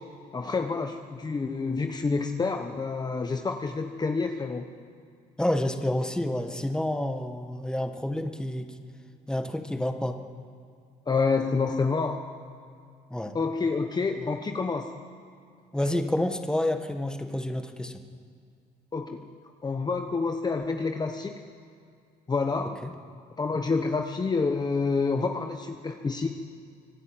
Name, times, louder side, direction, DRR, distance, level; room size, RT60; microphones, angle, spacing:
voice 1, 0.3-4.6 11.1-12.2 13.3-14.9 18.9-19.2 19.6-21.4 22.3-22.8 23.4-26.3, left 4 dB, 25° left, 5 dB, 1.2 m, -28 dB
voice 2, 5.4-8.7 9.3-10.2 13.1-13.3 15.7-18.0 22.8-22.9, left 1 dB, 5° left, 6 dB, 1.6 m, -29 dB
25.0 x 15.0 x 9.0 m, 2.3 s
cardioid pair, 110°, 17 cm